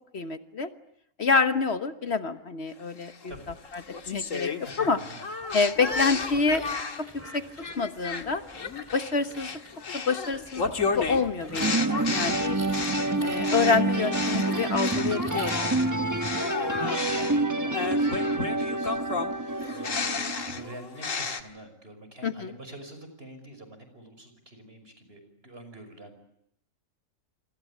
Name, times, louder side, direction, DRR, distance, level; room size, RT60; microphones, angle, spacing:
voice 1, 0.1-0.7 1.2-3.3 3.7-3.8 4.1-4.5 4.8-5.0 5.5-6.6 7.1-7.4 7.8-8.4 8.9-9.5 9.9-10.6 10.9-12.6 13.2-15.8 22.2-22.5, left 4 dB, 55° left, 9 dB, 1.5 m, -27 dB
sound 1, 3.0-7.1 7.6-15.9 16.2-21.4, left 4 dB, 85° left, 2.2 m, -33 dB
voice 2, 4.6-5.3 16.4-16.7 17.1-26.2, right 1 dB, 50° right, 8 dB, 5.9 m, -46 dB
sound 2, 5.4-15.6, equal, 10° left, 3.8 m, -47 dB
sound 3, 11.6-20.6, right 2 dB, 15° right, 1.1 m, -28 dB
28.0 x 25.0 x 8.6 m, 0.78 s
omnidirectional pair, 1.3 m